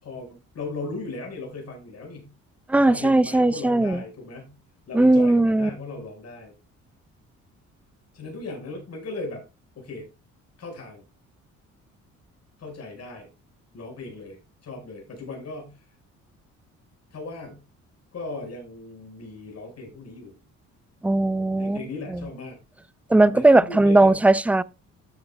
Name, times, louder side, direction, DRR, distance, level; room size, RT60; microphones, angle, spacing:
voice 1, 0.0-2.3 2.7-4.5 4.9-6.5 8.1-9.4 9.7-10.1 10.6-11.0 12.6-13.3 13.7-15.8 17.1-17.6 18.1-20.3 21.6-22.6 23.3-24.2, left 3 dB, 55° left, 5.0 m, -37 dB
voice 2, 2.7-4.0 4.9-5.7 21.0-21.8 23.1-24.6, right 2 dB, 5° right, 0.4 m, -18 dB
12.5 x 8.1 x 2.2 m
cardioid pair, 90°, 30 cm